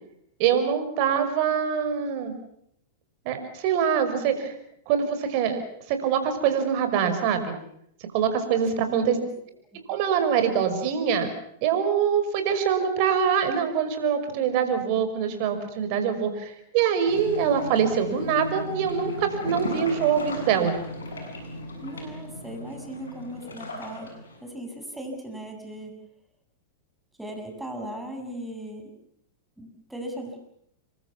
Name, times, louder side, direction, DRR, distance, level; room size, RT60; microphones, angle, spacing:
voice 1, 0.4-2.3 3.3-4.5 4.9-7.5 8.1-9.2 9.9-11.3 11.6-20.7, right 7 dB, 50° right, 8 dB, 5.6 m, -24 dB
voice 2, 8.9-9.3 9.7-9.8 21.8-24.1 24.4-25.9 27.2-28.9 29.6-30.4, right 1 dB, 5° right, 4 dB, 7.7 m, -37 dB
sound 1, 17.1-24.4, left 1 dB, 85° left, 7.9 m, -36 dB
28.0 x 23.0 x 7.2 m, 0.73 s
hypercardioid pair, 105°, 0 cm